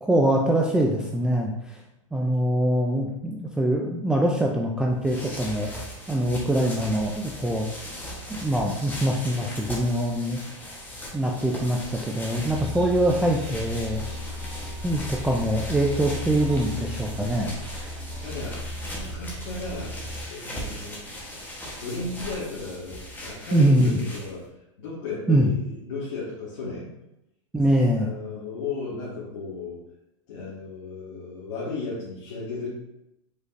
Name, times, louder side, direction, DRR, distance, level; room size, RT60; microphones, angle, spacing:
voice 1, 0.0-1.8 2.1-5.7 6.1-7.7 8.3-10.4 11.1-14.0 14.8-18.0 23.5-24.0 25.3-25.5 27.5-28.1, right 1 dB, 5° right, -1 dB, 0.3 m, -23 dB
sound 1, 4.9-24.5, equal, 10° left, 1.0 m, -39 dB
sound 2, 12.4-20.2, left 1 dB, 30° right, 1.4 m, -36 dB
voice 2, 18.2-18.6 19.0-21.0 21.4-24.4 24.8-26.9 28.0-29.8 30.3-32.7, left 3 dB, 70° left, -8 dB, 1.7 m, -35 dB
5.1 x 4.0 x 2.5 m, 0.87 s
supercardioid pair, 135°, 16 cm